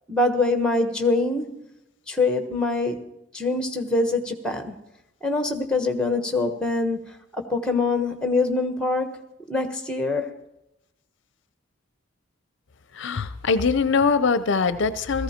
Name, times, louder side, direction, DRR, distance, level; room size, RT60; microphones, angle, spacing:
voice 1, 0.1-1.6 2.1-3.0 3.3-4.7 5.2-7.0 7.3-9.2 9.5-10.3, left 3 dB, 5° left, 6 dB, 1.2 m, -24 dB
voice 2, 12.9-15.2, left 5 dB, 60° left, 13 dB, 0.5 m, -22 dB
17.0 x 14.5 x 4.4 m, 0.86 s
head